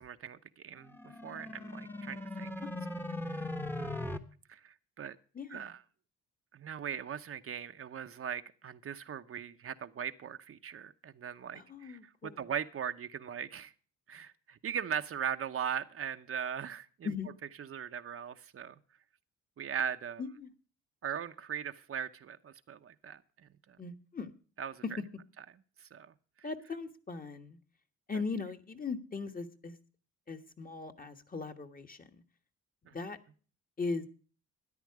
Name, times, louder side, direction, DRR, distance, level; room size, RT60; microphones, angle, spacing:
voice 1, 0.0-2.5 3.2-3.5 3.8-4.0 4.5-5.2 5.5-5.8 6.5-13.7 14.1-17.1 17.7-18.7 19.6-20.2 21.0-23.2 24.6-24.8 25.9-26.1 32.9-33.0, right 8 dB, 45° right, 0.8 m, -39 dB
sound 1, 0.8-4.2, left 1 dB, 5° left, 1.1 m, -39 dB
voice 2, 5.3-5.7 11.5-12.5 17.0-17.3 20.2-20.5 23.8-24.3 26.4-27.6 28.1-29.8 30.3-32.2 32.8-33.2 33.8-34.1, left 4 dB, 30° left, 1.5 m, -39 dB
13.5 x 10.0 x 4.8 m
cardioid pair, 90°, 30 cm